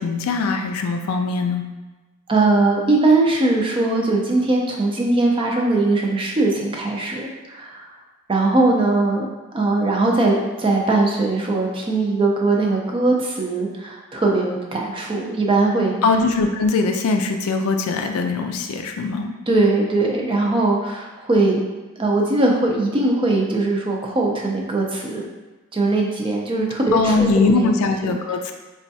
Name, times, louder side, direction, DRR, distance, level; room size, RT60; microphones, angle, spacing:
voice 1, 0.0-1.6 16.0-19.3 26.9-28.5, left 4 dB, 70° left, 5 dB, 0.3 m, -21 dB
voice 2, 2.3-7.9 8.3-9.3 9.5-15.9 19.5-21.7 22.0-25.2 25.7-27.7 28.0-28.1, right 2 dB, 25° right, -1 dB, 0.4 m, -20 dB
4.3 x 2.3 x 2.6 m, 1.2 s
head